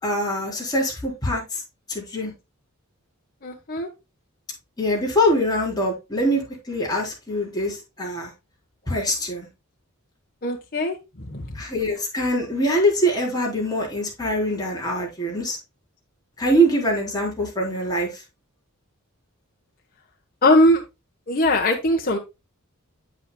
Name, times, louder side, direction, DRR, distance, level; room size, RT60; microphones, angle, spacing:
voice 1, 0.0-1.6 1.9-2.3 4.8-8.3 8.9-9.5 11.5-15.6 16.4-18.2, equal, 20° left, 4.0 m, -23 dB
voice 2, 3.4-3.9 10.4-11.0 11.3-11.5 20.4-20.8 21.3-22.2, left 1 dB, 45° left, 1.2 m, -20 dB
8.4 x 8.3 x 2.3 m
head